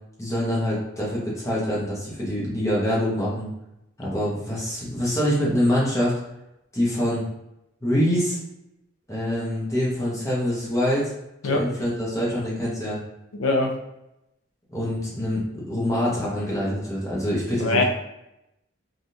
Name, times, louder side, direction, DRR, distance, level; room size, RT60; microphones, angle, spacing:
voice 1, 0.2-3.5 4.0-6.1 6.7-7.2 7.8-8.4 9.1-11.1 11.4-13.0 14.7-17.8, equal, 15° left, -7 dB, 0.8 m, -25 dB
voice 2, 13.4-13.7 17.6-17.8, left 2 dB, 80° left, 3 dB, 0.5 m, -21 dB
3.4 x 2.4 x 2.7 m, 0.87 s
head